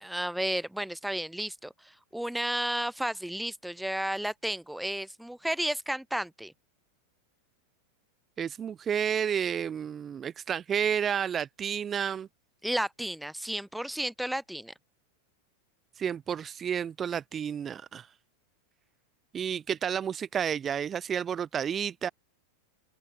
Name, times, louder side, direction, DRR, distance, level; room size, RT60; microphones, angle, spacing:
voice 1, 0.0-6.5 12.6-14.7, right 1 dB, ahead, 1.7 m, -32 dB
voice 2, 8.4-12.3 16.0-18.1 19.3-22.1, right 8 dB, 25° right, 0.7 m, -31 dB
open air
figure-of-eight pair, 90°, 0 cm